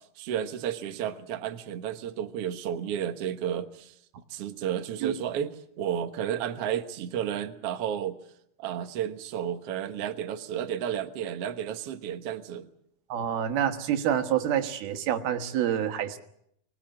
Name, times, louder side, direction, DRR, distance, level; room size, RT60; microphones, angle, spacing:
voice 1, 0.0-4.0 4.3-8.2 8.6-12.7, right 9 dB, 60° right, 7 dB, 1.7 m, -32 dB
voice 2, 13.1-16.2, right 10 dB, 85° right, 7 dB, 3.3 m, -27 dB
25.0 x 19.5 x 7.6 m, 0.74 s
omnidirectional pair, 4.3 m